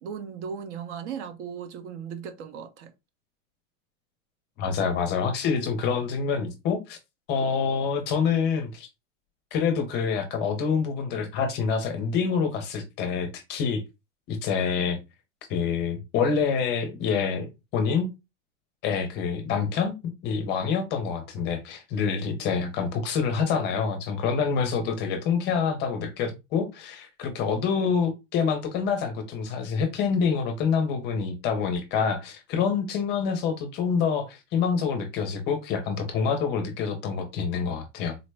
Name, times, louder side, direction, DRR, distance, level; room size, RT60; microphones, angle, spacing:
voice 1, 0.0-2.9, right 7 dB, 55° right, 0.9 m, -37 dB
voice 2, 4.6-7.0 7.3-8.9 9.5-13.8 14.3-15.0 15.5-18.1 18.8-20.0 20.2-38.2, left 6 dB, 25° left, 0.6 m, -26 dB
3.9 x 2.0 x 3.3 m
supercardioid pair, 145°, 40 cm